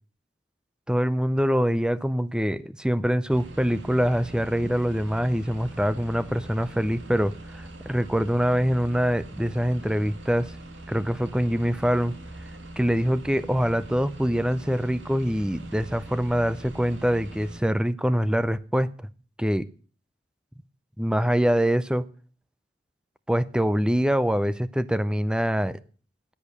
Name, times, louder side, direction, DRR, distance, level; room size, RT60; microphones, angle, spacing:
voice 1, 0.9-10.6 10.9-12.1 12.8-18.9 19.4-19.7 21.0-22.1 23.3-25.8, equal, 5° right, 16 dB, 0.5 m, -24 dB
sound 1, 3.3-17.6, right 1 dB, 85° right, 2.1 m, -42 dB
10.5 x 8.6 x 8.2 m, 0.42 s
head